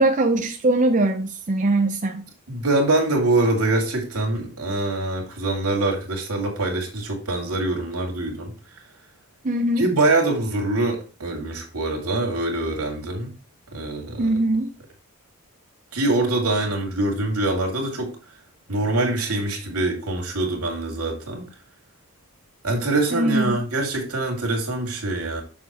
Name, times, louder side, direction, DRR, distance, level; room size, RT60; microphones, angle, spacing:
voice 1, 0.0-2.3 9.4-9.9 14.2-14.7 23.1-23.6, right 2 dB, 35° right, 0.6 m, -21 dB
voice 2, 2.5-8.5 9.8-13.3 13.7-14.4 15.9-18.1 18.7-21.4 22.6-25.4, right 2 dB, 85° right, 2.4 m, -24 dB
7.2 x 6.0 x 2.9 m
head